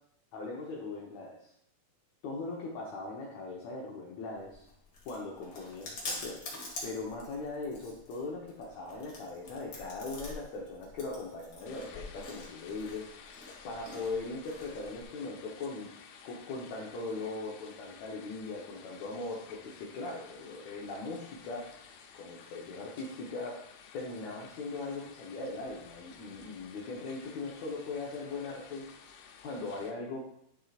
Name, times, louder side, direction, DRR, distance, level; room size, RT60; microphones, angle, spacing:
voice 1, 0.3-1.5 2.2-4.7 5.1-6.4 6.8-15.9 16.2-21.8 22.1-23.6 23.9-28.9 29.4-30.3, left 3 dB, 65° left, -3 dB, 1.9 m, -40 dB
Chewing mastication, 4.4-15.0, left 2 dB, 40° left, 1.9 m, -46 dB
sound 1, 11.7-29.9, left 7 dB, 85° left, 2.7 m, -53 dB
10.5 x 7.3 x 2.5 m, 0.73 s
omnidirectional pair, 4.3 m